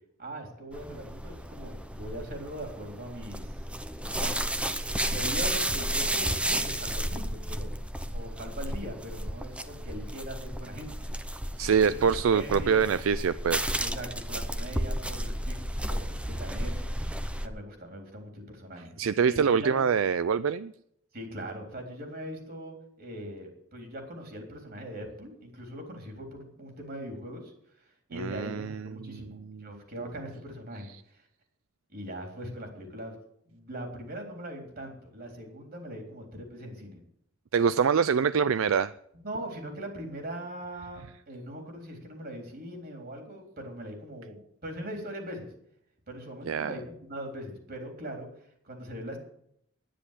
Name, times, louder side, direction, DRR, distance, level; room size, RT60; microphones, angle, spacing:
voice 1, 0.2-3.6 4.2-4.3 5.0-7.7 8.1-11.0 12.0-12.1 12.3-12.9 13.8-16.8 17.4-18.9 19.2-19.8 21.1-27.5 28.1-30.9 31.9-33.2 33.5-37.0 39.2-45.5 46.1-48.3 48.6-49.2, equal, 50° right, 3 dB, 3.8 m, -40 dB
sound 1, 0.7-17.5, right 1 dB, 5° right, 0.8 m, -33 dB
voice 2, 11.6-13.7 19.0-20.7 28.1-29.8 37.5-38.9 46.5-46.7, right 6 dB, 75° right, 15 dB, 0.4 m, -25 dB
10.5 x 10.0 x 8.3 m, 0.71 s
head